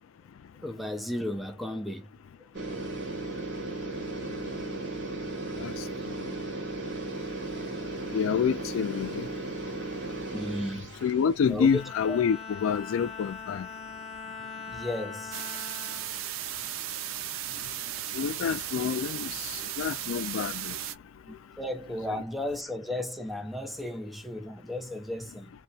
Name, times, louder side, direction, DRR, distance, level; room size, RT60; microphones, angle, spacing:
voice 1, 0.6-2.1 10.3-10.9 11.5-11.8 12.1-12.2 14.7-15.4 18.0-18.1 21.3-25.5, left 1 dB, ahead, 0.5 m, -34 dB
sound 1, 2.6-11.3, right 2 dB, 60° right, 1.2 m, -36 dB
voice 2, 8.1-9.3 11.0-13.7 18.1-19.4 19.8-20.8, left 7 dB, 80° left, 0.3 m, -27 dB
Bowed string instrument, 11.6-17.1, left 5 dB, 30° left, 0.8 m, -42 dB
sound 2, 15.3-20.9, right 11 dB, 80° right, 0.4 m, -36 dB
2.3 x 2.1 x 2.7 m
head